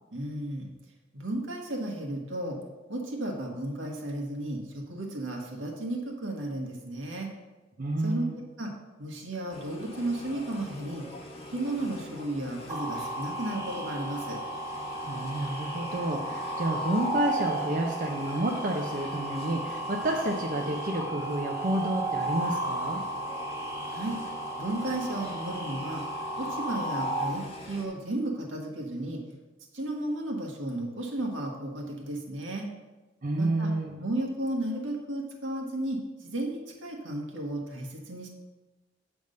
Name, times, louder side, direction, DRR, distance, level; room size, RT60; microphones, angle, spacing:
voice 1, 0.1-0.7 1.1-2.6 2.9-7.3 8.0-8.7 9.0-11.1 11.5-14.4 23.9-24.2 24.6-26.0 26.4-29.2 29.7-32.7 33.3-33.7 34.0-38.3, right 1 dB, 80° right, 0 dB, 1.5 m, -34 dB
voice 2, 7.8-8.4 15.1-23.0 33.2-34.0, right 1 dB, 45° right, 0 dB, 0.7 m, -30 dB
sound 1, 9.5-27.9, left 1 dB, 30° left, 1.2 m, -44 dB
sound 2, 12.7-27.2, right 1 dB, 15° right, 1.3 m, -34 dB
8.1 x 3.5 x 6.5 m, 1.1 s
head